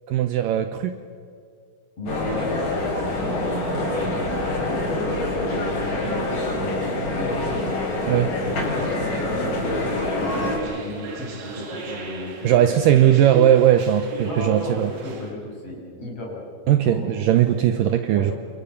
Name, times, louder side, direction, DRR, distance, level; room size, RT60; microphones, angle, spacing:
voice 1, 0.1-1.0 8.1-8.3 12.4-14.9 16.7-18.3, right 11 dB, 75° right, 9 dB, 2.2 m, -18 dB
voice 2, 2.0-2.7 3.1-7.8 8.4-12.7 14.2-16.4 16.8-17.4 18.1-18.3, left 1 dB, 35° left, -2 dB, 7.9 m, -33 dB
sound 1, 2.1-10.6, left 2 dB, 55° left, 7.8 m, -26 dB
sound 2, 10.3-15.3, right 4 dB, 50° right, 3.7 m, -36 dB
29.5 x 27.5 x 7.2 m, 2.2 s
omnidirectional pair, 4.6 m